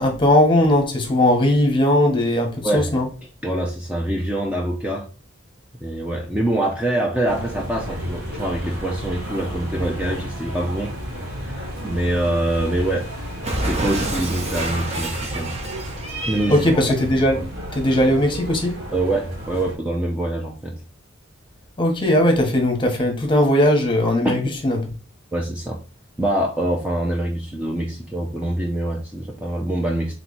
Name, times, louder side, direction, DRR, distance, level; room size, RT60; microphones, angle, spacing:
voice 1, 0.0-3.0 16.5-17.4 17.7-18.7 21.8-24.8, left 1 dB, 25° left, 1.0 m, -18 dB
voice 2, 3.4-5.1 5.8-11.0 11.4-13.1 13.4-15.5 16.3-16.7 17.1-17.5 18.9-20.8 24.2-24.3 25.3-25.8 26.2-30.1, right 1 dB, 5° right, 0.5 m, -25 dB
sound 1, 7.3-19.7, equal, 55° right, 1.7 m, -33 dB
Cat, 13.4-16.7, right 2 dB, 35° right, 0.9 m, -28 dB
3.4 x 3.1 x 3.9 m
head